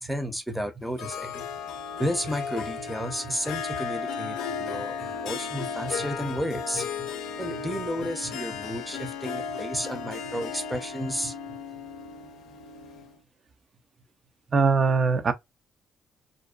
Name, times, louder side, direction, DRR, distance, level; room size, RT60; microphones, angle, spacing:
voice 1, 0.0-1.5 2.0-7.1 7.4-11.3, equal, ahead, 0.7 m, -32 dB
Harp, 1.0-13.2, left 6 dB, 85° left, 0.5 m, -35 dB
voice 2, 14.5-15.3, right 4 dB, 45° right, 0.5 m, -21 dB
2.5 x 2.2 x 2.3 m
cardioid pair, 90°, 0 cm